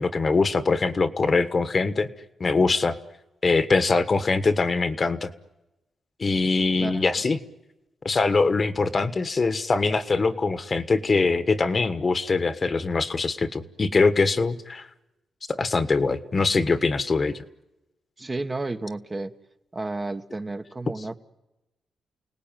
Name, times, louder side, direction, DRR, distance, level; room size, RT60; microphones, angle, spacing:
voice 1, 0.0-2.1 2.4-3.0 3.4-5.3 6.2-7.4 8.0-14.9 15.5-17.4, left 3 dB, 35° left, 12 dB, 1.4 m, -23 dB
voice 2, 18.2-19.3 19.7-21.2, right 2 dB, 25° right, 7 dB, 1.3 m, -32 dB
29.5 x 18.5 x 9.1 m, 0.99 s
cardioid pair, 95°, 0 cm